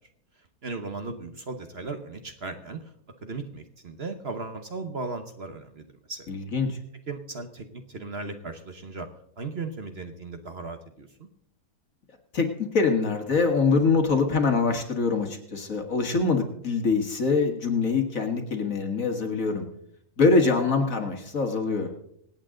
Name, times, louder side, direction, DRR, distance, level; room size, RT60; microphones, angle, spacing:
voice 1, 0.6-2.8 3.2-6.3 7.1-9.1 9.4-11.1, right 3 dB, 45° right, 6 dB, 1.2 m, -36 dB
voice 2, 6.3-6.8 12.3-19.6 20.2-21.9, left 4 dB, 55° left, 4 dB, 2.3 m, -24 dB
25.0 x 8.9 x 3.8 m, 0.72 s
omnidirectional pair, 1.7 m